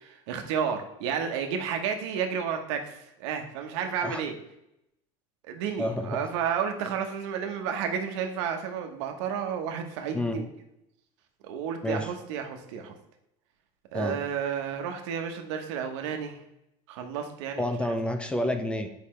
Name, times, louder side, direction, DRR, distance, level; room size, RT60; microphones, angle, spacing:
voice 1, 0.0-4.3 5.4-10.5 11.4-13.0 13.9-16.4 16.9-17.7, right 7 dB, 85° right, 5 dB, 1.0 m, -31 dB
voice 2, 5.8-6.2 10.1-10.4 11.8-12.1 13.9-14.2 17.6-18.9, left 1 dB, 5° left, 7 dB, 0.4 m, -29 dB
6.7 x 4.9 x 3.2 m, 0.82 s
cardioid pair, 160°, 15 cm